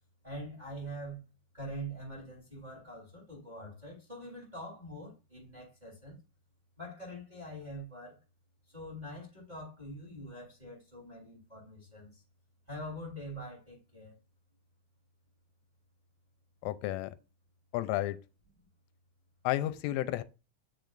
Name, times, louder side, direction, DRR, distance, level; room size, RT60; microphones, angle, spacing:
voice 1, 0.2-1.2 1.5-6.2 6.8-8.2 8.7-12.2 12.7-14.1, right 1 dB, 10° right, 2.6 m, -44 dB
voice 2, 16.6-17.2 17.7-18.2 19.4-20.2, left 15 dB, 85° left, 3.1 m, -32 dB
8.0 x 6.7 x 2.5 m
omnidirectional pair, 5.6 m